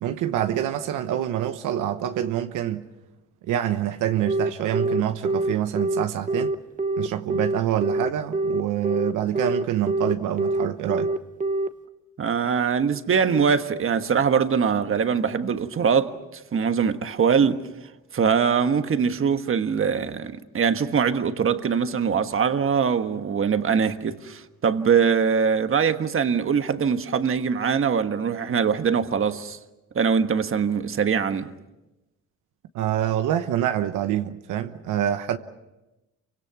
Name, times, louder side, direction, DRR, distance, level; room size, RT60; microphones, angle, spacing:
voice 1, 0.0-2.9 3.5-6.6 7.0-11.1 32.7-35.4, right 11 dB, 90° right, 1.1 m, -26 dB
Telephone, 4.3-11.7, right 2 dB, 25° right, 1.2 m, -24 dB
voice 2, 12.2-17.7 18.1-29.6 29.9-31.5, right 6 dB, 45° right, 1.4 m, -22 dB
28.5 x 25.0 x 6.1 m
cardioid pair, 90°, 30 cm